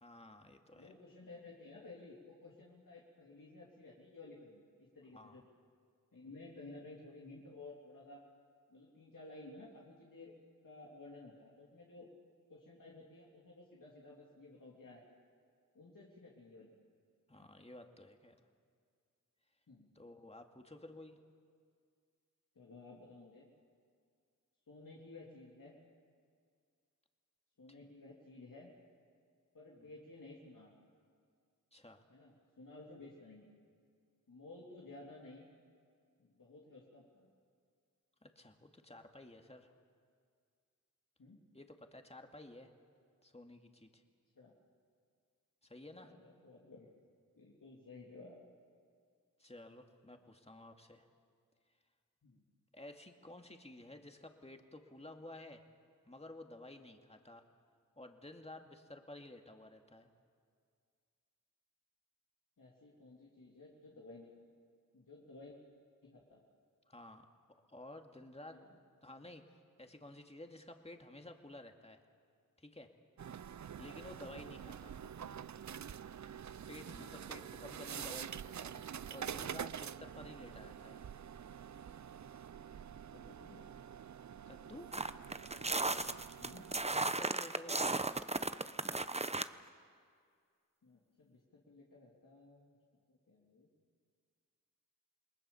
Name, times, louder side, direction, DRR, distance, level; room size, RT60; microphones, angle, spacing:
voice 1, 0.0-0.9 5.1-5.4 17.3-18.4 20.0-21.2 29.8-29.9 31.7-32.1 38.2-39.7 41.5-42.7 43.2-44.0 45.6-46.1 49.4-51.1 52.7-55.6 56.1-57.4 58.0-60.1 66.9-67.3 67.7-68.6 69.0-72.0 72.6-72.9 73.8-75.0 76.7-81.0 84.5-84.9 86.9-88.2, left 1 dB, 20° left, 4 dB, 2.3 m, -53 dB
voice 2, 0.7-5.4 6.1-8.2 8.7-10.3 10.6-12.1 12.5-15.0 15.7-16.7 17.4-17.5 19.7-19.9 22.5-23.5 24.7-25.8 27.6-28.7 29.5-30.7 32.1-33.5 34.3-35.5 36.2-37.3 41.2-41.4 44.3-44.5 45.9-47.0 47.3-48.5 52.2-52.4 62.6-64.3 64.9-65.6 66.0-66.4 68.5-68.7 75.0-75.4 76.9-77.1 83.1-83.7 86.4-86.6 90.8-92.8 93.1-93.7, left 2 dB, 70° left, -4 dB, 3.1 m, -55 dB
sound 1, 73.2-87.1, right 8 dB, 60° right, 0.6 m, -47 dB
sound 2, 84.9-89.5, right 2 dB, 20° right, 0.8 m, -35 dB
27.5 x 20.0 x 7.2 m, 2.1 s
cardioid pair, 40°, 33 cm